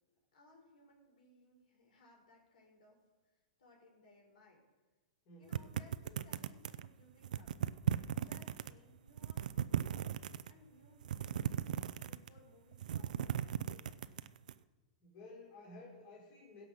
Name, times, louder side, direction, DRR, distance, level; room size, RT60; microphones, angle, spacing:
voice 1, 0.3-3.0 3.6-4.6 5.4-7.5 7.9-10.1 10.5-14.0, left 2 dB, 80° left, -1 dB, 4.5 m, -64 dB
voice 2, 5.3-5.7 15.0-16.7, left 2 dB, 40° left, -2 dB, 3.9 m, -54 dB
sound 1, 5.5-6.9 7.2-8.7 9.1-10.5 11.0-12.4 12.7-14.5, right 9 dB, 75° right, 0.5 m, -37 dB
16.5 x 5.5 x 6.5 m, 1.3 s
hypercardioid pair, 150°, 4 cm